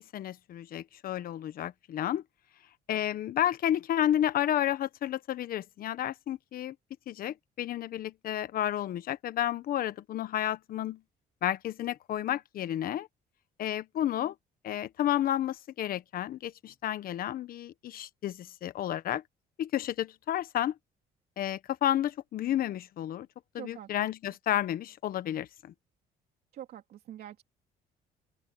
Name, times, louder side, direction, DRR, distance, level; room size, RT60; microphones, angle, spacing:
voice 1, 0.1-2.2 2.9-6.7 7.1-11.0 11.4-13.1 13.6-14.3 14.6-19.2 19.6-20.8 21.4-23.3 23.5-25.7, left 11 dB, 60° left, 1.2 m, -31 dB
voice 2, 23.5-23.9 26.5-27.4, right 11 dB, 65° right, 3.1 m, -44 dB
open air
cardioid pair, 110°, 17 cm